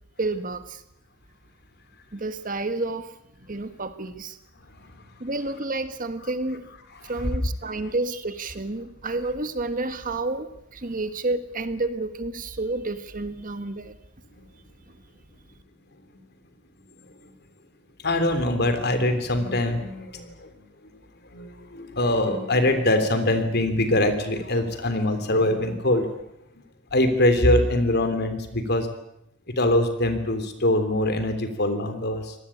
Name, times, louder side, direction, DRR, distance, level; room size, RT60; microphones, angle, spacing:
voice 1, 0.2-0.8 2.1-3.1 3.5-4.4 5.2-6.7 7.0-14.0, right 2 dB, 40° right, 10 dB, 1.6 m, -30 dB
voice 2, 18.0-20.5 21.3-26.1 26.9-28.9 29.6-32.3, left 1 dB, 50° left, 9 dB, 3.4 m, -23 dB
25.5 x 19.0 x 8.8 m, 0.78 s
head